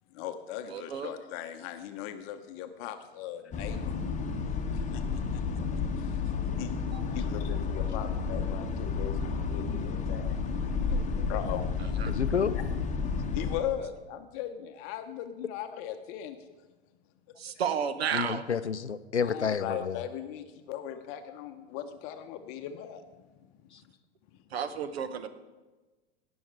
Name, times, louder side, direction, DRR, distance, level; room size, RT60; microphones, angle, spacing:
voice 1, 0.1-3.9 4.7-6.2 6.6-6.7 7.1-10.4 10.9-11.7 12.5-12.6 13.3-16.4 19.2-23.1, left 10 dB, 40° left, 8 dB, 0.8 m, -39 dB
voice 2, 0.7-1.1 6.9-7.0 12.0-12.1 17.4-18.4 24.5-25.3, right 7 dB, 65° right, 11 dB, 1.1 m, -32 dB
sound 1, 3.5-13.6, left 5 dB, 20° left, 1.1 m, -31 dB
voice 3, 12.1-12.5 18.1-20.0, left 6 dB, 90° left, 16 dB, 0.5 m, -29 dB
17.5 x 6.3 x 4.7 m, 1.2 s
figure-of-eight pair, 85°, 33 cm